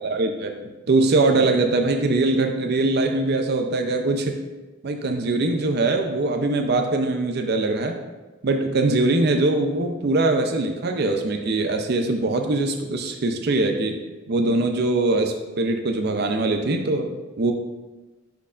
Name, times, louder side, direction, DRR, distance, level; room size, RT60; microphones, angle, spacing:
voice 1, 0.0-4.4 4.8-8.0 8.4-14.0 14.3-17.5, right 2 dB, 55° right, 5 dB, 0.5 m, -22 dB
10.5 x 4.5 x 2.4 m, 1.2 s
head